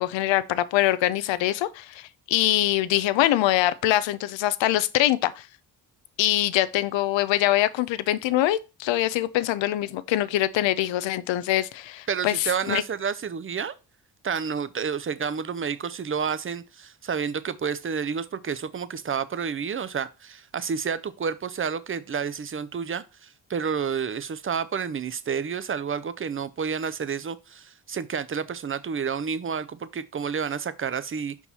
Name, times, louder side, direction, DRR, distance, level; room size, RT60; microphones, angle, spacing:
voice 1, 0.0-5.4 6.2-12.8, left 14 dB, 70° left, 0.7 m, -24 dB
voice 2, 12.1-13.7 14.2-31.5, right 6 dB, 25° right, 0.6 m, -30 dB
5.4 x 4.7 x 4.2 m
supercardioid pair, 50°, 47 cm